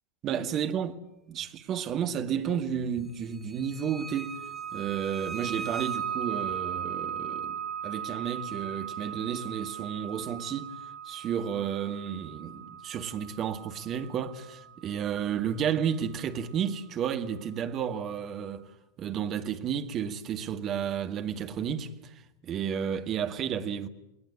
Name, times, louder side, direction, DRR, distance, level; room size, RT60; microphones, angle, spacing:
voice 1, 0.2-0.9 1.3-4.4 4.7-10.7 11.1-18.7 19.0-22.1 22.4-23.9, right 8 dB, 30° right, 1.9 m, -32 dB
sound 1, 3.7-16.2, right 8 dB, 5° left, 3.8 m, -38 dB
30.0 x 20.5 x 8.9 m
figure-of-eight pair, 90°, 0 cm